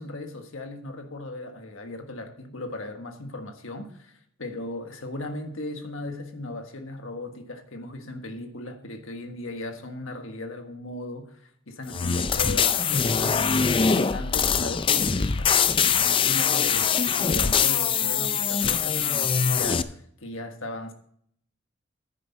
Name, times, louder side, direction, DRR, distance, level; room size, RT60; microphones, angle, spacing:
voice 1, 0.0-20.9, left 2 dB, 80° left, 1.5 m, -37 dB
sound 1, 11.9-19.8, left 6 dB, 25° left, 0.4 m, -23 dB
10.5 x 9.7 x 4.1 m
head